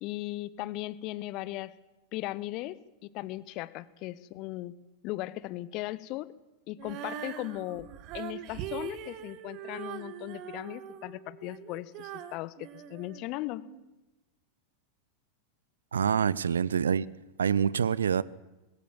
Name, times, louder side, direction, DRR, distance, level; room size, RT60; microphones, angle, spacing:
voice 1, 0.0-1.7 2.1-4.7 5.0-6.3 6.7-7.9 8.1-13.6, left 17 dB, 40° left, 0.9 m, -37 dB
Female singing, 6.8-13.8, right 10 dB, 40° right, 1.5 m, -42 dB
voice 2, 15.9-17.1 17.4-18.2, right 7 dB, 70° right, 0.6 m, -26 dB
20.5 x 17.0 x 7.5 m
figure-of-eight pair, 90°, 0 cm